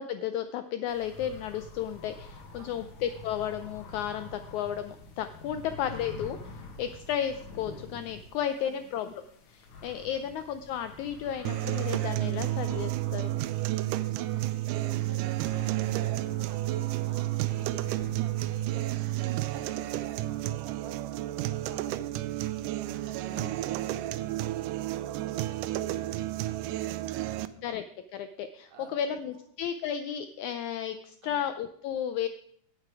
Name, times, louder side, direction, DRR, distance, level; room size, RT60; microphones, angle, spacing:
voice 1, 0.0-13.3 23.3-23.5 27.6-27.8 28.1-32.3, left 9 dB, 80° left, 10 dB, 1.7 m, -33 dB
sound 1, 0.9-20.5, left 2 dB, 60° left, 2.7 m, -48 dB
voice 2, 2.6-2.9 5.5-5.7 8.4-8.9 10.1-10.3 14.1-27.6 28.7-29.4 31.2-31.5, right 5 dB, 60° right, 3 dB, 2.6 m, -52 dB
sound 2, 11.5-27.5, right 15 dB, 80° right, 2.1 m, -31 dB
17.0 x 6.6 x 4.8 m, 0.65 s
omnidirectional pair, 3.9 m